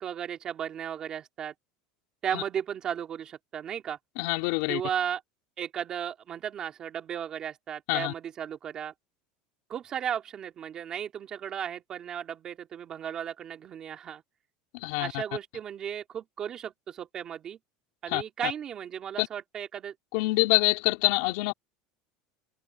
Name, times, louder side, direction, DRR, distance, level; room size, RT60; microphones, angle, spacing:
voice 1, 0.0-1.5 2.2-4.0 4.7-5.2 5.6-8.9 9.7-14.2 15.0-17.6 18.0-19.9, right 9 dB, 25° right, 2.5 m, -35 dB
voice 2, 4.2-4.8 7.9-8.1 14.7-15.2 18.1-18.5 19.2-19.3 20.1-21.5, left 25 dB, 65° left, 4.0 m, -26 dB
cardioid pair, 165°, 3 cm